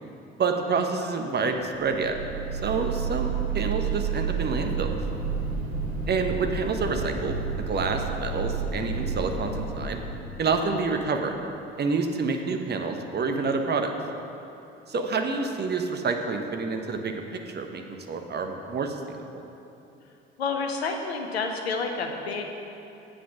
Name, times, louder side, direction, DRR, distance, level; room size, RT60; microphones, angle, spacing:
voice 1, 0.4-2.2 2.6-5.0 6.1-10.0 10.4-11.3 11.8-13.9 14.9-17.1 17.5-19.0 19.3-19.4, right 4 dB, 35° right, 4 dB, 1.0 m, -28 dB
sound 1, 1.8-11.0, right 5 dB, 75° right, 1.1 m, -30 dB
voice 2, 20.4-22.6, left 4 dB, 80° left, 4 dB, 0.9 m, -29 dB
8.8 x 7.7 x 6.0 m, 3.0 s
figure-of-eight pair, 50°, 31 cm